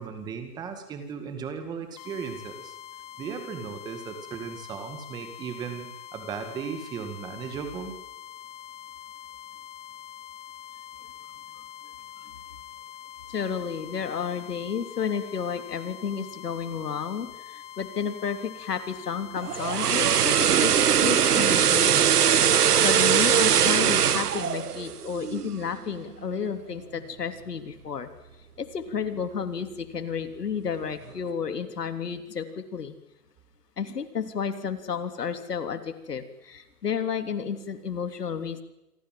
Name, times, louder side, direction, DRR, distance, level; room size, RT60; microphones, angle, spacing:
voice 1, 0.0-2.7 3.2-7.9, right 6 dB, 10° right, 8 dB, 1.9 m, -36 dB
sound 1, 2.0-21.5, left 11 dB, 25° left, 1.8 m, -44 dB
voice 2, 13.3-22.1 22.5-28.1 28.6-32.9 33.8-38.6, left 6 dB, 80° left, 9 dB, 3.4 m, -32 dB
sound 2, 19.4-25.6 25.9-26.1, right 8 dB, 75° right, 1.4 m, -21 dB
28.5 x 23.5 x 7.7 m, 0.96 s
hypercardioid pair, 165°, 47 cm